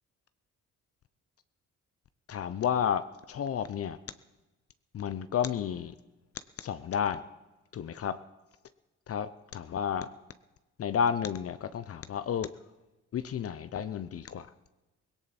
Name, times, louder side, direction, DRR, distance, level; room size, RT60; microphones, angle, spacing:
voice 1, 2.3-4.0 4.9-5.9 6.6-7.2 7.7-8.2 9.1-10.1 10.8-12.5 13.1-14.5, left 8 dB, 50° left, 12 dB, 0.7 m, -31 dB
18.0 x 17.5 x 4.2 m, 1.1 s
cardioid pair, 90°, 30 cm